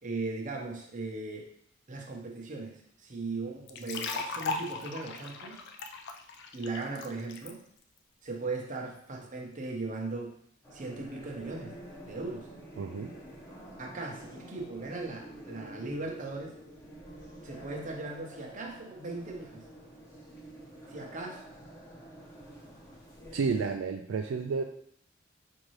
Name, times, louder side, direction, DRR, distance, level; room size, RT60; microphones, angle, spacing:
voice 1, 0.0-1.5 1.9-5.6 6.5-7.6 8.2-10.3 10.7-11.7 12.0-12.5 13.8-16.5 17.4-19.6 20.9-21.5, right 3 dB, 40° right, 1 dB, 0.8 m, -38 dB
sound 1, 3.7-7.5, left 4 dB, 60° left, 0.4 m, -37 dB
sound 2, 10.6-23.7, right 1 dB, 15° left, 0.9 m, -48 dB
voice 2, 12.8-13.1 23.3-24.6, right 5 dB, 75° right, 3 dB, 0.3 m, -31 dB
5.1 x 2.6 x 3.1 m, 0.66 s
head